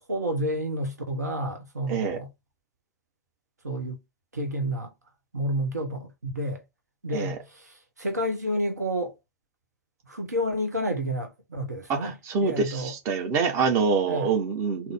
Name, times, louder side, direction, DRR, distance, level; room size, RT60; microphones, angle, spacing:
voice 1, 0.1-2.3 3.6-4.0 4.3-4.9 5.3-6.6 7.0-9.1 10.1-12.9 14.1-14.3, equal, 80° right, 1.1 m, -30 dB
voice 2, 11.9-14.9, right 5 dB, 35° right, 1.2 m, -26 dB
3.9 x 2.9 x 3.5 m
figure-of-eight pair, 95°, 9 cm